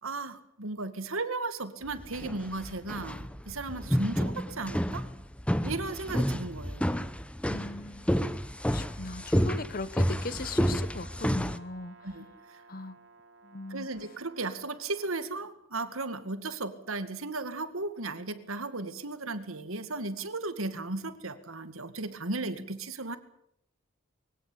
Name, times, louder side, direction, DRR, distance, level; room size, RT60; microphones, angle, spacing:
voice 1, 0.0-5.1 5.6-7.1 12.0-12.6 13.7-23.2, right 3 dB, 85° right, 2.2 m, -36 dB
sound 1, 1.9-11.6, equal, 5° left, 0.9 m, -30 dB
voice 2, 7.5-8.2 8.7-12.1 12.7-13.0 13.4-13.9, left 3 dB, 45° left, 1.0 m, -39 dB
Brass instrument, 10.0-15.2, right 3 dB, 60° right, 3.6 m, -56 dB
22.5 x 17.0 x 8.7 m
head